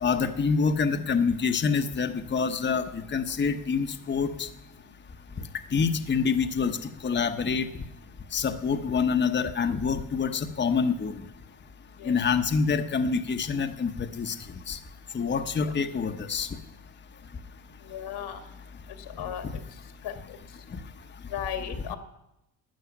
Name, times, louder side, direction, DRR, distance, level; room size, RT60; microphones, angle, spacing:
voice 1, 0.0-2.8 3.1-4.3 5.7-6.7 7.0-7.7 8.3-11.1 12.1-13.9 14.2-14.3 14.7-14.8 15.1-16.5, left 5 dB, 25° left, 7 dB, 1.0 m, -26 dB
voice 2, 17.9-18.4 19.2-19.4 20.0-20.1 21.3-22.0, left 9 dB, 75° left, 7 dB, 2.1 m, -34 dB
13.0 x 9.1 x 9.8 m, 0.87 s
cardioid pair, 105°, 41 cm